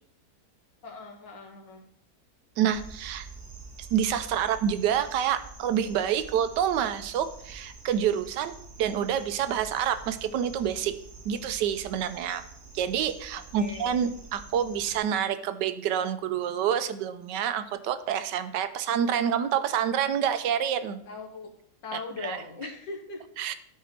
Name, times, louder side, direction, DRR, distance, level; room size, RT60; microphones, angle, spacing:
voice 1, 0.8-1.8 13.3-14.0 21.1-21.5 21.8-23.2, left 4 dB, 80° left, 2 dB, 1.9 m, -40 dB
voice 2, 2.6-3.3 3.9-10.9 11.3-12.4 12.7-21.0 21.9-22.4 23.4-23.5, right 9 dB, 75° right, 11 dB, 1.2 m, -27 dB
sound 1, 2.7-15.0, right 4 dB, 45° right, 1.7 m, -47 dB
12.0 x 4.7 x 4.3 m, 0.68 s
omnidirectional pair, 1.9 m